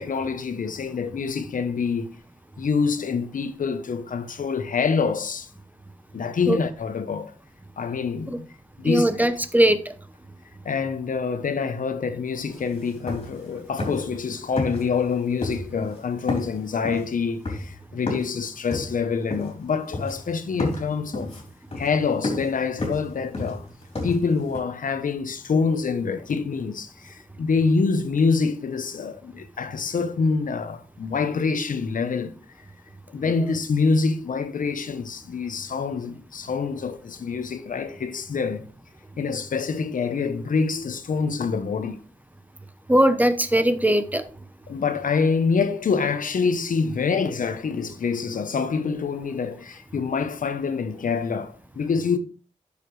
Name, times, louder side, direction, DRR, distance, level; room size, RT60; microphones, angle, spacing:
voice 1, 0.0-2.1 2.6-5.5 6.1-7.3 7.8-8.5 8.8-9.2 10.6-21.3 21.8-23.6 24.0-32.3 33.1-38.7 39.2-42.0 44.7-52.2, left 5 dB, 75° left, 0.9 m, -26 dB
voice 2, 8.8-9.8 42.9-44.2, right 1 dB, 10° right, 0.9 m, -19 dB
sound 1, 12.5-12.6 12.9-13.5 13.8-14.2 14.6-15.1 15.4-16.0 16.3-18.4 18.7-19.7 19.9-20.3 20.6-24.6, left 2 dB, 45° left, 3.5 m, -31 dB
10.0 x 6.7 x 3.2 m
wide cardioid pair, 75°, 14 cm